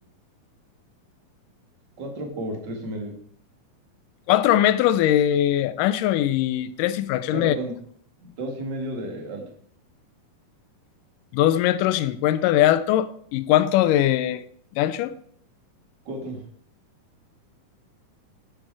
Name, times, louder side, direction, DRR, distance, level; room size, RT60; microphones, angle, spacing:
voice 1, 2.0-3.1 7.3-7.7 8.2-9.4 16.1-16.4, right 1 dB, 35° right, 2.1 m, -32 dB
voice 2, 4.3-7.6 11.3-14.4 14.8-15.1, left 12 dB, 80° left, 2.1 m, -21 dB
13.5 x 5.0 x 4.7 m
omnidirectional pair, 4.0 m